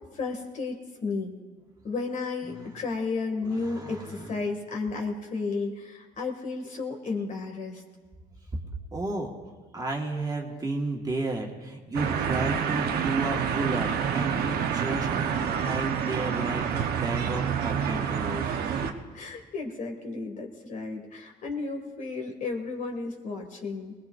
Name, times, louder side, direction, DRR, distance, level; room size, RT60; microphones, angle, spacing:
voice 1, 0.1-1.4 1.8-7.8 18.6-23.9, left 4 dB, 50° left, 2 dB, 2.2 m, -33 dB
voice 2, 3.4-4.3 8.5-8.6 8.9-9.3 9.7-18.5, right 2 dB, 20° right, 0 dB, 1.6 m, -33 dB
sound 1, 11.9-18.9, right 7 dB, 70° right, 1.0 m, -28 dB
20.0 x 19.5 x 2.6 m, 1.5 s
cardioid pair, 110°, 17 cm